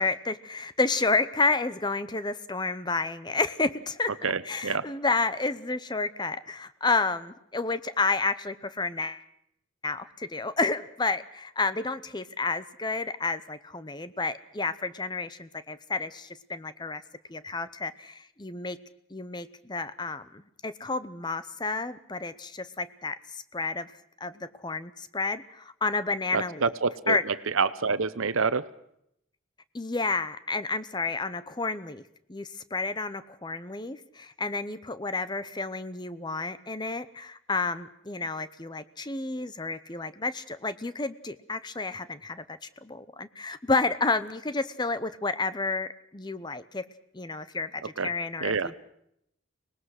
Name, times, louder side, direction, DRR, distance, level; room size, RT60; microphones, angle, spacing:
voice 1, 0.0-4.1 4.4-9.2 9.8-17.0 17.3-18.8 19.1-23.9 24.2-26.6 27.1-27.2 29.7-32.0 32.3-46.9 47.1-48.8, left 3 dB, 20° left, 14 dB, 0.7 m, -30 dB
voice 2, 4.2-4.9 26.3-28.6 48.0-48.1 48.4-48.7, right 5 dB, 80° right, 15 dB, 0.9 m, -27 dB
25.0 x 19.5 x 6.5 m, 0.75 s
head